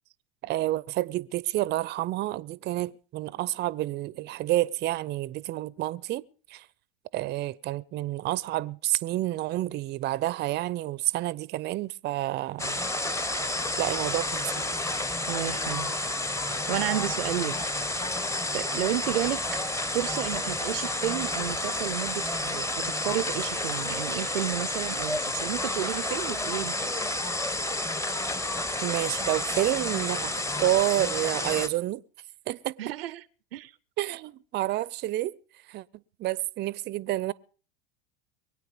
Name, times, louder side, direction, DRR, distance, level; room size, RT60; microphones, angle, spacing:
voice 1, 0.4-6.2 6.5-6.7 7.1-12.8 13.8-14.6 28.8-32.0 32.5-32.9 34.0-35.4 35.7-35.8 36.2-37.3, right 15 dB, 35° right, 0.6 m, -29 dB
sound 1, 12.6-31.7, left 1 dB, 10° left, 0.9 m, -30 dB
voice 2, 15.3-15.9 16.7-17.6 18.5-19.4 19.9-27.0 32.8-33.2 33.5-33.7, right 14 dB, 75° right, 0.6 m, -32 dB
23.5 x 8.8 x 5.3 m
hypercardioid pair, 90°, 30 cm